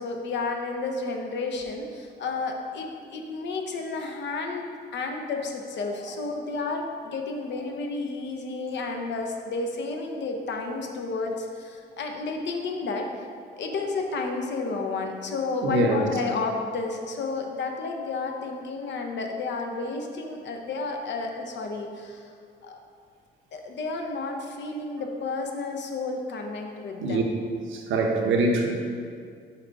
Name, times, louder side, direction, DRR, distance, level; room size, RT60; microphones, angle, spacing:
voice 1, 0.0-13.1 13.6-22.3 22.6-22.8 23.5-27.2, left 3 dB, 65° left, 3 dB, 0.8 m, -31 dB
voice 2, 15.6-16.0 27.0-27.2 27.7-28.7, right 2 dB, 80° right, 1 dB, 0.9 m, -23 dB
5.7 x 4.6 x 4.0 m, 2.2 s
cardioid pair, 90°, 20 cm